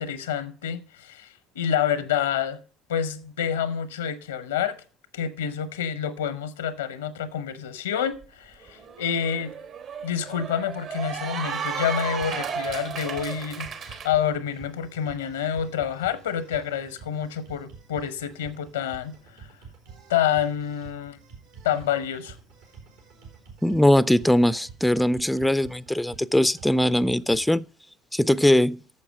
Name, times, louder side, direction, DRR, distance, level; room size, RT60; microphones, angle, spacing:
voice 1, 0.0-2.6 2.9-4.8 5.1-9.5 10.0-19.5 20.1-21.2 21.6-22.4, left 9 dB, 85° left, 0.8 m, -28 dB
Cheering / Applause, 8.2-8.3 8.6-14.1, right 6 dB, 55° right, 1.2 m, -33 dB
sound 1, 12.2-27.5, right 5 dB, 80° right, 3.3 m, -49 dB
voice 2, 23.6-27.7 28.1-28.8, left 1 dB, 5° left, 0.4 m, -21 dB
8.6 x 6.9 x 6.3 m
hypercardioid pair, 70°, 0 cm